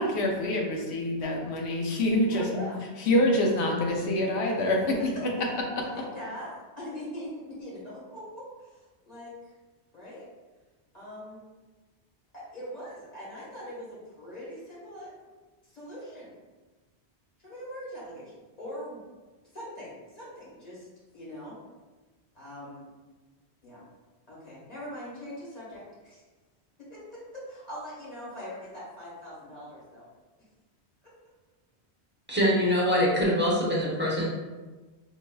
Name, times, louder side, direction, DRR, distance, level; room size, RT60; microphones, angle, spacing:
voice 1, 0.0-2.6 3.0-5.3 5.7-5.9, left 1 dB, 75° left, 0 dB, 1.0 m, -26 dB
voice 2, 2.3-2.8 5.9-9.5 9.9-10.3 10.9-11.4 12.3-15.1 15.6-16.3 17.4-19.0 19.5-20.9 21.1-21.6 22.3-22.9 23.6-23.8 24.3-26.2 26.9-30.0 31.0-31.1, equal, 40° left, -8 dB, 1.4 m, -42 dB
voice 3, 32.3-34.3, equal, 10° right, -6 dB, 0.7 m, -24 dB
4.5 x 2.8 x 2.2 m, 1.3 s
omnidirectional pair, 1.1 m